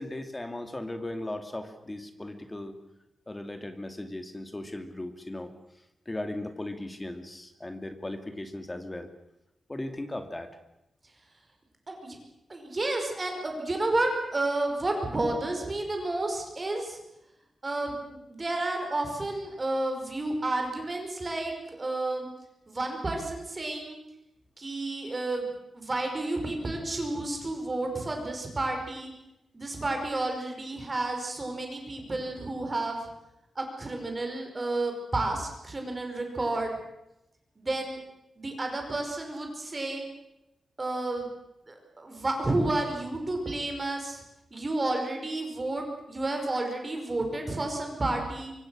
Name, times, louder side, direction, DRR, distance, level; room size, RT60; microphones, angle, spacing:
voice 1, 0.0-2.8 3.3-5.5 6.1-9.1 9.7-10.5, left 1 dB, 15° left, 7 dB, 2.4 m, -37 dB
voice 2, 12.5-17.0 17.6-22.3 22.7-24.0 24.6-25.5 25.7-29.1 29.5-33.0 33.6-36.7 37.6-38.0 38.4-40.1 40.8-41.3 41.7-44.2 44.5-48.5, right 2 dB, 25° right, 3 dB, 5.3 m, -31 dB
25.0 x 23.5 x 6.4 m, 0.87 s
wide cardioid pair, 180°, 0 cm